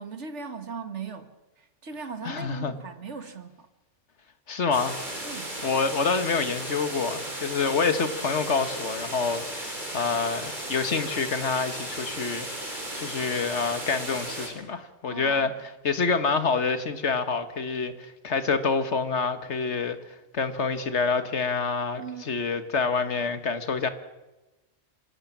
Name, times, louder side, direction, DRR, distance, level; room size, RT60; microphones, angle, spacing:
voice 1, 0.0-3.7 5.2-5.5 15.0-15.5 22.0-22.4, right 5 dB, 70° right, 2.1 m, -39 dB
voice 2, 2.2-2.7 4.5-5.0 5.6-20.0 20.3-23.9, left 4 dB, 70° left, 1.9 m, -27 dB
sound 1, 4.7-14.5, right 1 dB, 40° right, 5.3 m, -35 dB
25.0 x 17.0 x 7.4 m
omnidirectional pair, 1.3 m